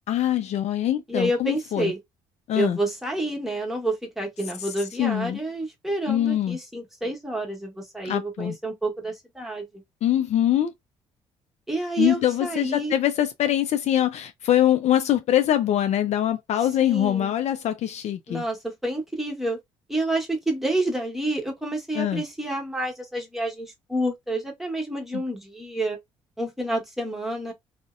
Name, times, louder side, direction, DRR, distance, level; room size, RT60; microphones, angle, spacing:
voice 1, 0.1-1.9 2.5-2.8 4.6-5.4 6.1-6.6 8.0-8.6 10.0-10.7 12.0-18.4 21.9-22.2 25.1-25.2, left 11 dB, 55° left, 0.4 m, -23 dB
voice 2, 1.1-2.0 2.6-9.8 11.7-12.9 16.8-17.3 18.3-19.6 19.9-26.0 26.4-27.5, right 1 dB, ahead, 1.1 m, -29 dB
2.6 x 2.0 x 2.4 m
hypercardioid pair, 55°, 13 cm